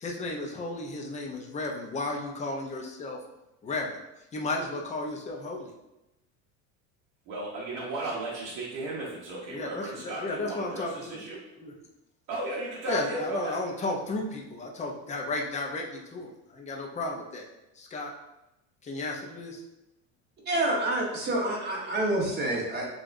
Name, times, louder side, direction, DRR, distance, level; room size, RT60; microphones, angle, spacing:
voice 1, 0.0-3.2 3.6-3.9 4.3-5.7 9.5-11.2 11.6-11.7 12.9-17.5 17.8-18.1 18.8-19.6, left 2 dB, 20° left, 0 dB, 0.5 m, -33 dB
voice 2, 7.3-11.4 12.3-13.6, right 2 dB, 60° right, -5 dB, 1.0 m, -35 dB
voice 3, 20.5-22.9, right 1 dB, 25° right, -2 dB, 1.0 m, -28 dB
6.4 x 2.4 x 2.6 m, 0.93 s
cardioid pair, 145°, 36 cm